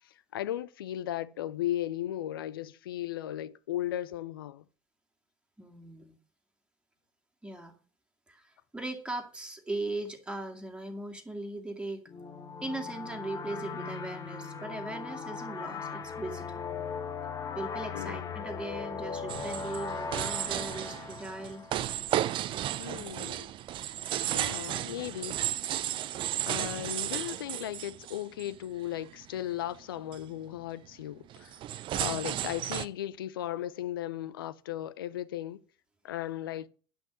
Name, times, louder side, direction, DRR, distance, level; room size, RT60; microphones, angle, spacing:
voice 1, 0.0-4.6 17.9-18.4 22.8-23.5 24.3-25.4 26.4-31.6 32.0-35.6 36.0-36.7, left 12 dB, 80° left, 0.6 m, -36 dB
voice 2, 5.6-6.2 7.4-7.8 8.3-12.0 12.6-16.6 17.5-21.6 31.9-32.3, right 2 dB, 10° right, 2.2 m, -39 dB
sound 1, 12.1-22.4, left 5 dB, 35° left, 1.5 m, -39 dB
sound 2, 19.3-28.6 29.1-29.4 29.7-29.8 30.1-30.4 31.3-32.9, right 12 dB, 45° right, 0.6 m, -34 dB
10.5 x 6.2 x 6.2 m
hypercardioid pair, 80°, 12 cm